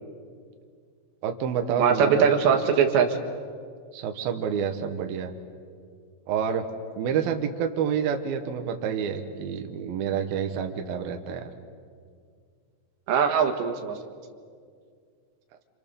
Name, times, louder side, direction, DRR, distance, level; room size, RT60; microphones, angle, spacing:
voice 1, 1.2-2.6 3.9-5.3 6.3-6.7 7.0-11.5, right 7 dB, 65° right, 5 dB, 2.9 m, -28 dB
voice 2, 1.8-3.2 13.1-14.0, right 7 dB, 80° right, 4 dB, 3.9 m, -21 dB
29.5 x 27.0 x 7.0 m, 2.1 s
omnidirectional pair, 5.0 m